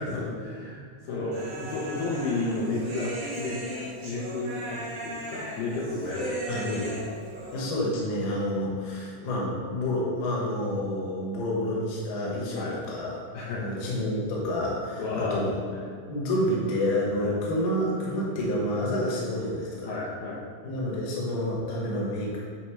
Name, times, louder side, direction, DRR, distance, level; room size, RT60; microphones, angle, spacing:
voice 1, 0.0-3.6 4.0-6.6 12.5-12.8 13.3-13.6 15.0-15.4 15.7-15.8 17.2-17.3 19.8-20.4, left 2 dB, 80° left, -5 dB, 2.7 m, -32 dB
Human voice, 1.3-7.7, right 1 dB, 50° right, 1.5 m, -37 dB
voice 2, 6.5-7.0 7.5-13.2 13.6-15.5 16.1-19.9 20.6-22.4, left 1 dB, 65° left, -4 dB, 2.7 m, -29 dB
10.5 x 4.3 x 3.2 m, 2.2 s
omnidirectional pair, 4.1 m